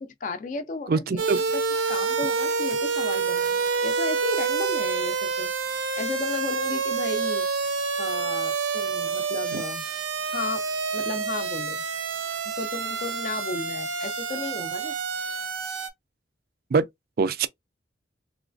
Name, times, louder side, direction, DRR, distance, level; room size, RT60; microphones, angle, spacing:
voice 1, 0.0-1.2 1.5-1.6 1.9-5.5 6.0-7.5 8.0-9.8 10.3-10.7 10.9-11.8 12.6-14.9, left 3 dB, 40° left, 0.4 m, -34 dB
voice 2, 0.9-1.4 9.5-9.6 16.7-16.9 17.2-17.5, right 4 dB, 50° right, 0.4 m, -23 dB
sound 1, 1.2-15.9, right 5 dB, 85° right, 0.8 m, -28 dB
3.1 x 3.0 x 2.5 m
head